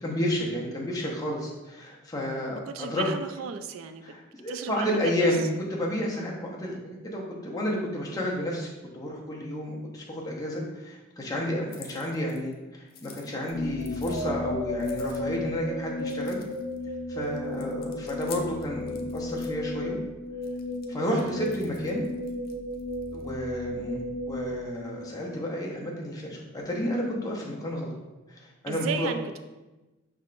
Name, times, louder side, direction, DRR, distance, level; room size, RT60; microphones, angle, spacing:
voice 1, 0.0-3.1 4.0-5.4 5.7-8.7 8.9-16.4 17.1-20.0 20.9-22.0 23.1-24.0 24.3-28.0 28.3-29.1, equal, 20° left, -3 dB, 0.7 m, -31 dB
voice 2, 2.5-4.0 4.5-5.3 21.1-21.4 28.7-29.4, right 6 dB, 70° right, 9 dB, 0.3 m, -34 dB
sound 1, 11.7-12.5 12.9-14.3 14.7-15.5 16.0-16.8 17.2-19.6 20.4-23.3, left 7 dB, 45° left, 0.4 m, -49 dB
sound 2, 13.5-25.6, left 1 dB, 65° left, 1.0 m, -34 dB
5.4 x 3.5 x 2.5 m, 1.1 s
head